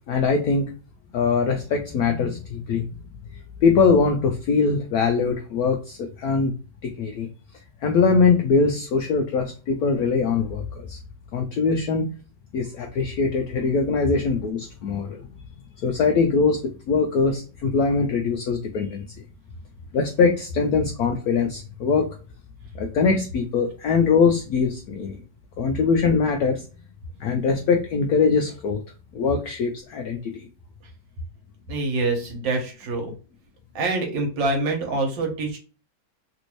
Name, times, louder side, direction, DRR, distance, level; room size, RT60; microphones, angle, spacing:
voice 1, 0.1-0.7 1.1-2.9 3.6-6.5 6.8-7.3 7.8-11.0 11.3-12.1 12.5-15.3 15.8-19.1 19.9-22.1 22.7-25.2 25.6-26.6 27.2-28.8 29.1-30.5, left 5 dB, 80° left, 4 dB, 0.8 m, -22 dB
voice 2, 31.7-33.1 33.8-35.6, right 3 dB, 70° right, 2 dB, 1.6 m, -25 dB
3.4 x 2.6 x 3.0 m, 0.36 s
omnidirectional pair, 2.1 m